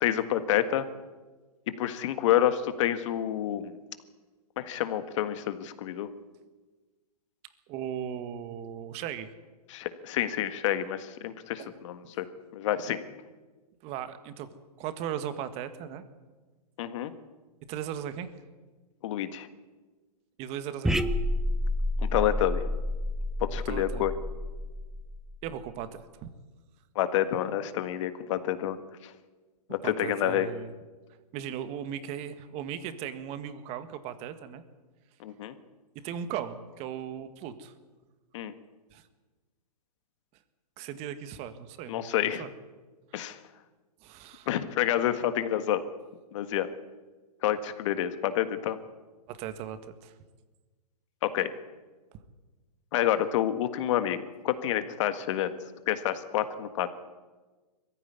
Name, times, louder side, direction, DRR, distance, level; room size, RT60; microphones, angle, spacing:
voice 1, 0.0-0.9 1.8-3.7 4.6-6.1 9.7-12.3 12.5-13.0 16.8-17.1 19.0-19.5 22.0-22.6 23.4-24.1 26.9-29.1 29.7-30.5 35.2-35.5 38.3-38.5 41.9-42.4 43.1-43.4 44.5-45.8 46.3-46.7 47.4-48.8 51.2-51.5 52.9-55.5 55.9-56.9, left 11 dB, 50° left, 11 dB, 1.7 m, -28 dB
voice 2, 7.7-9.3 11.6-11.8 13.8-14.5 14.8-16.0 17.7-18.3 20.4-21.1 23.5-24.1 25.4-26.3 29.8-30.7 31.3-34.6 36.0-37.7 38.9-39.0 40.8-42.5 44.0-44.5 49.3-50.1, right 9 dB, 30° right, 11 dB, 1.7 m, -37 dB
sound 1, 20.8-25.5, left 1 dB, ahead, 0.7 m, -30 dB
22.0 x 15.0 x 9.6 m, 1.3 s
hypercardioid pair, 135°, 20 cm